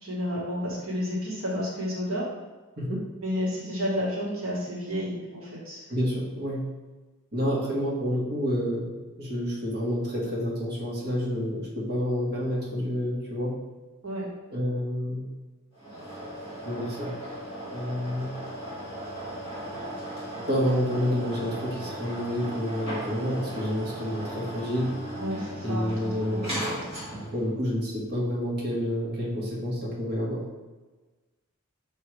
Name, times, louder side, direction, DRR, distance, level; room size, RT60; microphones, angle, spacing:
voice 1, 0.0-2.2 3.2-5.8 14.0-14.3 25.2-26.6, equal, 65° right, -4 dB, 1.5 m, -31 dB
voice 2, 5.9-6.6 7.3-13.6 14.5-15.3 16.6-17.1 17.7-18.3 20.5-24.9 25.6-26.6 27.3-30.4, equal, 45° right, -5 dB, 1.5 m, -29 dB
sound 1, 15.8-27.5, right 1 dB, 30° right, 2.0 m, -37 dB
6.1 x 5.3 x 3.3 m, 1.2 s
head